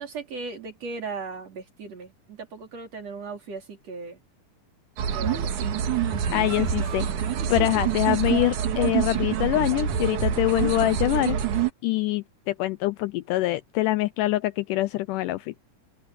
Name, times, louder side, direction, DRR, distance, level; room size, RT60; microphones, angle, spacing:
voice 1, 0.0-4.2 5.1-5.5, right 4 dB, 45° right, 4.5 m, -37 dB
sound 1, 5.0-11.7, right 8 dB, 65° right, 3.0 m, -26 dB
voice 2, 6.3-7.1 7.5-11.4 11.8-15.5, left 17 dB, 80° left, 1.9 m, -24 dB
open air
omnidirectional pair, 4.0 m